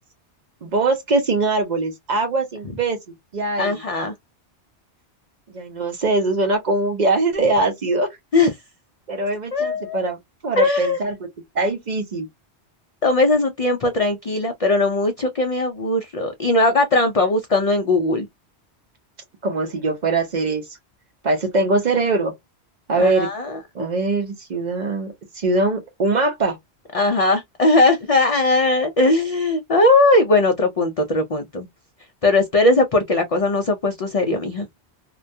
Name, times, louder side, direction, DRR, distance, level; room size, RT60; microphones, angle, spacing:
voice 1, 0.6-3.0 3.3-3.8 5.5-8.1 9.1-10.2 10.4-11.2 11.5-12.3 19.4-20.6 21.2-22.3 22.9-23.3 23.7-26.6, right 2 dB, 50° right, 0.6 m, -22 dB
voice 2, 3.6-4.1 8.3-8.5 9.5-10.0 10.6-11.0 13.0-18.3 23.0-23.6 26.9-31.7 32.2-34.7, left 2 dB, 70° left, 0.3 m, -19 dB
2.3 x 2.1 x 2.6 m
omnidirectional pair, 1.1 m